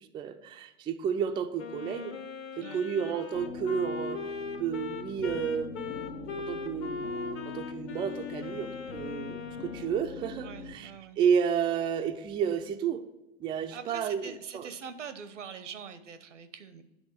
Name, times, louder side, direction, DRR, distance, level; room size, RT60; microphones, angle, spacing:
voice 1, 0.0-2.2 2.6-7.1 7.4-10.9 11.2-13.0 13.4-14.7, right 7 dB, 15° right, 7 dB, 0.3 m, -31 dB
Wind instrument woodwind instrument, 1.6-10.1, left 4 dB, 35° left, 0.9 m, -39 dB
sound 1, 3.3-10.7, left 5 dB, 65° left, 0.9 m, -42 dB
voice 2, 10.4-11.2 13.7-16.8, right 6 dB, 85° right, 11 dB, 0.8 m, -43 dB
8.9 x 3.6 x 5.6 m, 1.0 s
hypercardioid pair, 95°, 36 cm